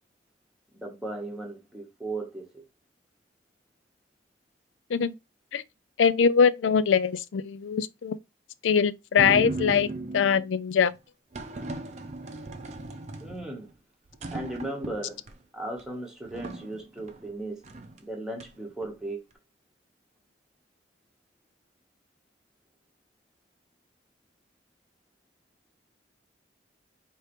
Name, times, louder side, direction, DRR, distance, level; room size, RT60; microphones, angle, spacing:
voice 1, 0.7-2.5 13.2-13.7 14.3-15.2 15.5-17.6 18.0-19.2, right 2 dB, 5° right, 1.1 m, -36 dB
voice 2, 6.0-8.2 8.6-10.9, left 6 dB, 90° left, 0.4 m, -23 dB
sound 1, 9.2-10.5 11.3-13.7 14.1-15.3 15.8-15.9 16.2-17.3 17.6-18.0 18.4-18.9, right 2 dB, 40° right, 0.5 m, -37 dB
4.9 x 3.0 x 3.0 m
head